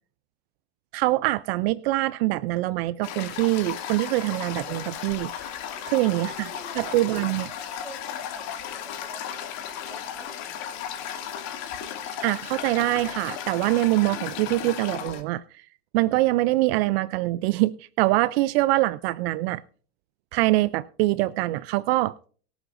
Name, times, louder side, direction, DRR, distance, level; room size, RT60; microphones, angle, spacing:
voice 1, 0.9-5.3 5.9-6.5 6.8-7.5 12.2-15.4 15.9-19.6 20.3-22.1, right 18 dB, 60° right, 0.5 m, -24 dB
Toilet flush, 3.0-15.2, left 9 dB, 50° left, 2.5 m, -35 dB
voice 2, 5.7-10.6, right 2 dB, 10° right, 3.9 m, -48 dB
24.0 x 8.1 x 2.6 m
supercardioid pair, 130°, 34 cm